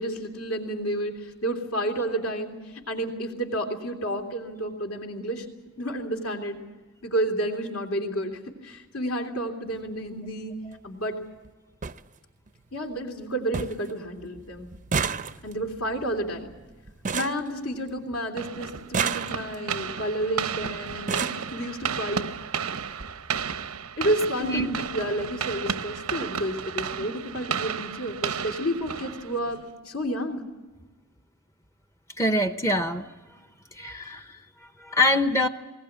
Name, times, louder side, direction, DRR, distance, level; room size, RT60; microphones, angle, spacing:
voice 1, 0.0-5.5 5.8-6.6 7.0-10.5 10.8-11.2 12.7-14.7 15.4-16.5 17.1-22.3 24.0-30.4, right 1 dB, 65° left, 2 dB, 3.0 m, -30 dB
sound 1, 9.7-9.9 11.1-11.2 11.4-11.5 11.8-12.0 12.5-12.9 13.2-13.3 13.5-13.9 14.2-18.2 18.7-19.7 20.5-20.6 20.9-21.5 22.4-22.5 22.9-23.1 23.3-23.5, right 5 dB, 35° right, 0.6 m, -32 dB
sound 2, 18.4-29.6, right 7 dB, 85° right, 0.9 m, -33 dB
voice 2, 24.4-24.7 32.2-33.0 33.8-34.2 34.9-35.5, left 1 dB, 15° left, 8 dB, 0.8 m, -23 dB
20.5 x 19.0 x 8.7 m, 1.2 s
head